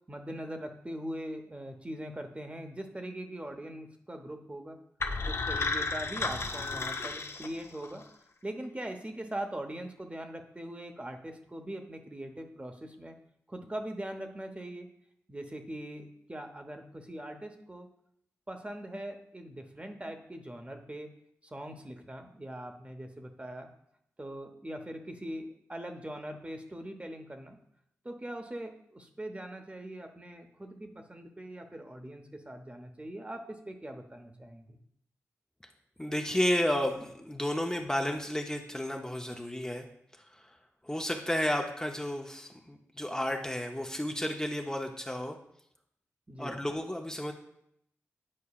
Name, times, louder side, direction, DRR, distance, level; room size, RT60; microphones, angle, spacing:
voice 1, 0.1-4.8 5.2-8.0 8.4-13.2 13.5-14.9 15.3-17.9 18.5-21.1 21.5-23.7 24.2-27.6 28.0-34.8 46.3-46.6, right 1 dB, 20° right, 4 dB, 0.8 m, -41 dB
sound 1, 5.0-8.0, left 3 dB, 50° left, 0.5 m, -33 dB
voice 2, 36.0-39.9 40.3-40.6 40.8-45.4 46.4-47.3, left 1 dB, 10° left, 2 dB, 0.6 m, -32 dB
8.5 x 4.6 x 2.4 m, 0.74 s
cardioid pair, 40°, 6 cm